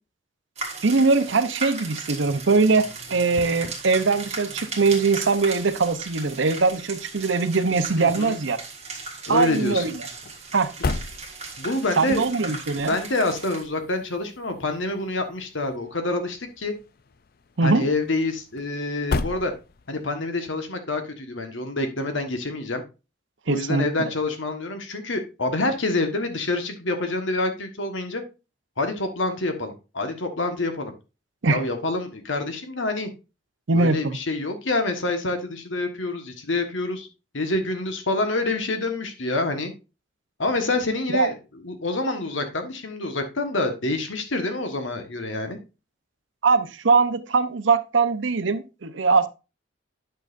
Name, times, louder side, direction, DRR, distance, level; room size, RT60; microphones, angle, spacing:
sound 1, 0.6-13.7, right 3 dB, 35° right, 1.6 m, -37 dB
voice 1, 0.8-8.6 9.3-10.1 10.5-10.7 12.0-12.9 17.6-17.9 23.5-24.1 31.4-31.6 33.7-34.2 41.1-41.3 46.4-49.3, right 4 dB, 80° right, 0.7 m, -21 dB
sound 2, 2.1-20.2, left 3 dB, 50° left, 0.5 m, -38 dB
voice 2, 8.0-8.4 9.3-9.9 11.6-12.2 12.7-16.7 17.6-19.5 19.9-22.8 23.5-28.2 28.8-30.9 31.5-33.1 33.7-37.1 37.3-39.7 40.4-41.3 41.6-45.6, left 2 dB, 80° left, 1.4 m, -27 dB
9.7 x 6.4 x 2.5 m
head